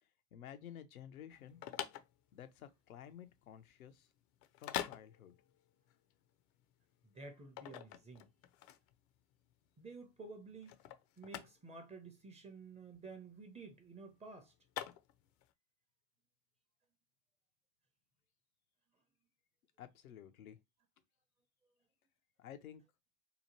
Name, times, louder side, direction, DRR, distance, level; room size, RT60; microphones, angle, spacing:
voice 1, 0.3-1.6 2.3-4.1 4.6-5.4 19.8-20.6 22.4-22.8, left 10 dB, 90° left, 0.6 m, -53 dB
sound 1, 1.3-15.5, left 12 dB, 50° left, 0.5 m, -47 dB
voice 2, 7.0-8.3 9.8-10.8 11.2-14.5, right 3 dB, 15° right, 0.6 m, -52 dB
2.8 x 2.1 x 2.9 m
hypercardioid pair, 90°, 41 cm